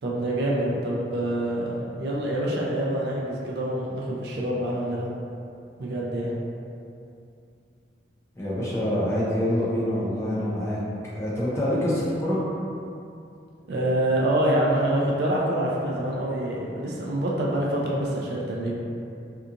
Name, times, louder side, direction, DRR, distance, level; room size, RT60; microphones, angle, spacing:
voice 1, 0.0-5.1 5.8-6.3 13.7-18.7, right 1 dB, 60° right, -4 dB, 0.4 m, -26 dB
voice 2, 8.4-10.8 11.1-12.4, left 1 dB, 15° left, -9 dB, 0.5 m, -26 dB
2.7 x 2.4 x 2.5 m, 2.5 s
head